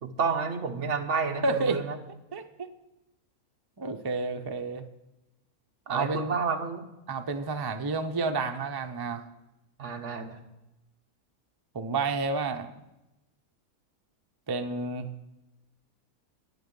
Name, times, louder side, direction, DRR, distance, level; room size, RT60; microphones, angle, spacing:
voice 1, 0.0-2.0 5.9-6.9 9.8-10.4, right 5 dB, 55° right, 5 dB, 1.3 m, -30 dB
voice 2, 1.4-1.8 2.3-2.7 3.8-4.9 5.9-6.4 7.1-9.2 11.7-12.7 14.5-15.1, right 3 dB, 40° right, 6 dB, 0.3 m, -30 dB
11.0 x 9.6 x 5.3 m, 0.95 s
omnidirectional pair, 1.5 m